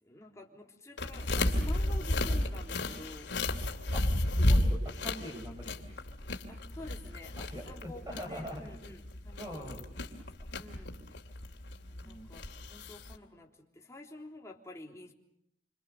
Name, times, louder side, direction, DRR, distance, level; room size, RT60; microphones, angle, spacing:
voice 1, 0.0-3.5 6.5-10.3 10.6-11.0 11.8-15.1, left 1 dB, 15° left, 0 dB, 3.5 m, -50 dB
sound 1, 1.0-13.2, left 1 dB, 85° left, 2.7 m, -32 dB
voice 2, 3.9-6.0 7.4-8.7 9.4-9.8 12.0-12.3, equal, 20° right, 5 dB, 6.1 m, -43 dB
28.0 x 26.5 x 6.7 m, 0.74 s
head